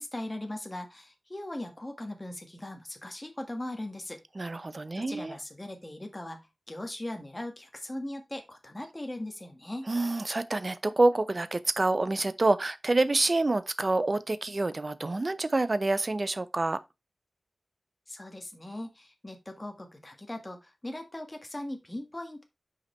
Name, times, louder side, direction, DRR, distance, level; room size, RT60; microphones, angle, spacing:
voice 1, 0.0-4.2 4.9-6.4 6.7-9.9 18.1-22.4, left 1 dB, 20° left, 1.7 m, -39 dB
voice 2, 4.4-5.3 9.9-16.8, right 2 dB, 35° right, 0.7 m, -27 dB
6.0 x 4.9 x 4.3 m
wide cardioid pair, 90°, 0 cm